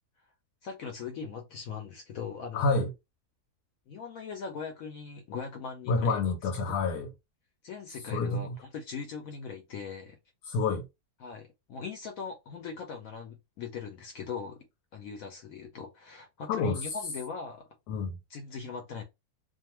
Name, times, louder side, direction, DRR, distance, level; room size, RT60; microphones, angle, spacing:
voice 1, 0.6-2.8 3.9-6.2 6.7-6.8 7.6-10.2 11.2-14.7 14.9-17.6 18.3-19.0, left 6 dB, 70° left, 0.9 m, -40 dB
voice 2, 2.5-2.9 5.9-7.1 8.1-8.5 10.5-10.8 16.5-16.8 17.9-18.1, left 3 dB, 85° left, 1.2 m, -28 dB
2.5 x 2.4 x 2.9 m
omnidirectional pair, 1.6 m